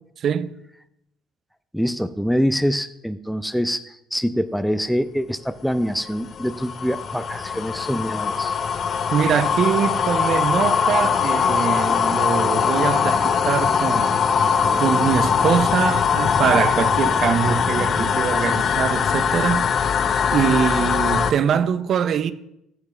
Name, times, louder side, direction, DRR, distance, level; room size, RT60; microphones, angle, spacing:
voice 1, 0.2-0.5 9.1-19.7 20.3-22.3, right 8 dB, 50° right, 0.6 m, -23 dB
voice 2, 1.7-8.6, equal, ahead, 0.5 m, -25 dB
sound 1, 5.7-21.3, left 6 dB, 45° left, 0.6 m, -21 dB
14.5 x 6.4 x 3.3 m
hypercardioid pair, 55°, 0 cm